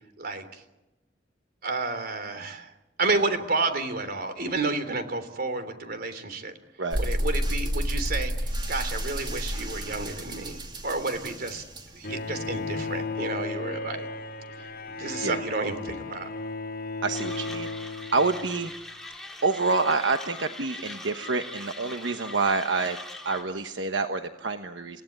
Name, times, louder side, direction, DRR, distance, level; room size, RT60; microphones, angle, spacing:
voice 1, 0.2-0.6 1.6-2.7 3.0-6.5 7.0-11.6 11.9-14.1 14.6-16.3, right 3 dB, 55° right, 9 dB, 3.4 m, -31 dB
sound 1, 6.9-13.0, equal, 25° right, 2.9 m, -31 dB
Bowed string instrument, 12.0-18.8, left 3 dB, 55° left, 3.2 m, -35 dB
voice 2, 17.0-17.7 18.1-18.7 19.4-23.0 23.2-25.0, right 3 dB, 85° right, 7 dB, 1.1 m, -27 dB
Mechanisms, 17.1-23.4, left 2 dB, 5° left, 3.9 m, -42 dB
29.5 x 17.5 x 9.5 m, 0.99 s
head